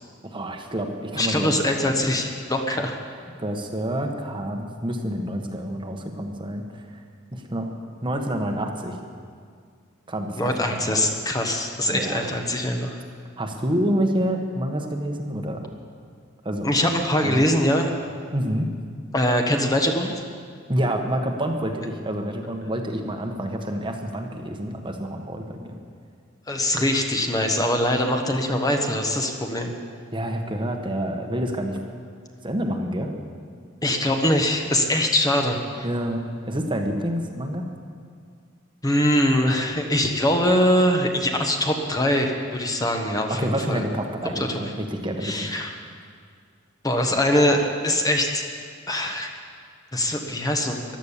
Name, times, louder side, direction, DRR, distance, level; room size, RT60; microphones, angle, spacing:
voice 1, 0.2-1.9 3.4-7.0 7.3-7.7 8.0-9.0 10.1-10.5 10.8-11.0 11.9-12.3 13.4-15.7 16.4-16.7 17.2-17.5 18.3-18.7 20.7-25.8 30.1-31.8 32.4-33.1 35.8-37.7 43.3-45.5, right 1 dB, 25° right, 3 dB, 1.2 m, -28 dB
voice 2, 1.1-3.0 10.4-13.0 16.6-17.9 19.1-20.2 26.5-29.7 33.8-35.9 38.8-43.8 44.3-44.6 45.2-45.8 46.8-48.4 48.9-49.4 49.9-50.8, left 1 dB, 20° left, 3 dB, 1.1 m, -23 dB
15.0 x 11.5 x 7.2 m, 2.1 s
head